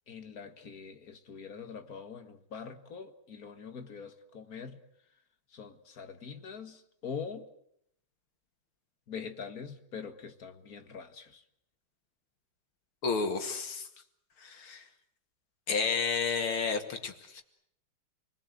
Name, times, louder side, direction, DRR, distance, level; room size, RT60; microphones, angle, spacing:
voice 1, 0.1-4.8 5.5-7.5 9.1-11.4, left 6 dB, 45° left, 2.0 m, -43 dB
voice 2, 13.0-13.9 14.4-14.8 15.7-17.4, left 5 dB, 85° left, 3.0 m, -31 dB
29.0 x 20.0 x 8.1 m
omnidirectional pair, 2.2 m